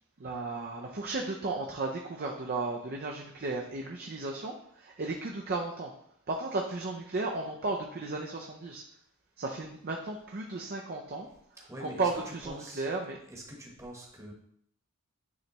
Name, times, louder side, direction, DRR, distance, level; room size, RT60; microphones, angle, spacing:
voice 1, 0.2-5.9 6.3-8.8 9.4-11.3 11.6-13.2, right 3 dB, 45° right, 0 dB, 0.6 m, -34 dB
voice 2, 11.7-12.9 13.3-14.3, equal, 15° right, -1 dB, 1.1 m, -44 dB
9.5 x 3.3 x 3.0 m, 0.70 s
head